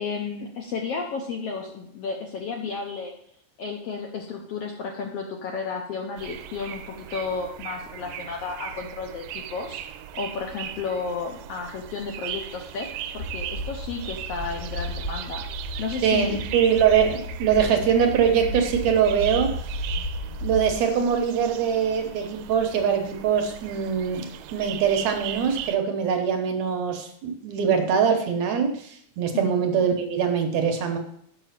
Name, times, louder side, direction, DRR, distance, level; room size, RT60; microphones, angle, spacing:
voice 1, 0.0-3.1 3.6-9.8 10.2-12.9 13.1-15.4 15.8-16.5 29.3-29.6, left 5 dB, 70° left, 1 dB, 1.5 m, -32 dB
sound 1, 6.2-25.8, right 10 dB, 85° right, 2.1 m, -39 dB
sound 2, 13.2-20.7, equal, 40° left, 0.9 m, -34 dB
voice 2, 16.0-19.8 20.4-31.0, right 7 dB, 70° right, 4 dB, 2.1 m, -23 dB
7.0 x 6.1 x 5.7 m, 0.68 s
omnidirectional pair, 3.6 m